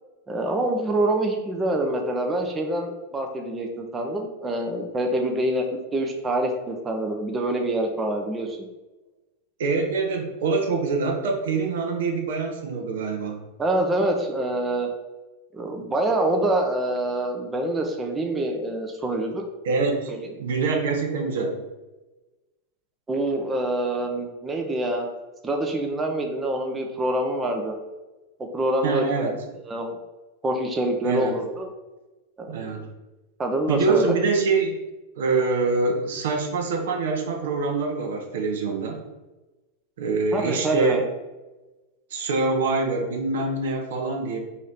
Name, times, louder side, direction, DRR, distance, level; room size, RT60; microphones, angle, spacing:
voice 1, 0.3-8.6 13.6-14.9 15.5-19.4 20.1-20.2 23.1-25.1 25.4-27.7 28.5-29.3 29.6-30.0 30.4-31.7 32.4-32.5 33.4-34.1 40.3-41.0, right 1 dB, 15° right, 3 dB, 0.6 m, -26 dB
voice 2, 9.6-13.4 19.6-20.1 20.4-21.6 28.8-29.3 31.0-31.3 32.5-32.9 33.7-34.8 35.2-39.0 40.0-41.0 42.1-44.4, right 4 dB, 60° right, 3 dB, 0.7 m, -25 dB
4.1 x 3.0 x 4.0 m, 1.1 s
figure-of-eight pair, 90°, 0 cm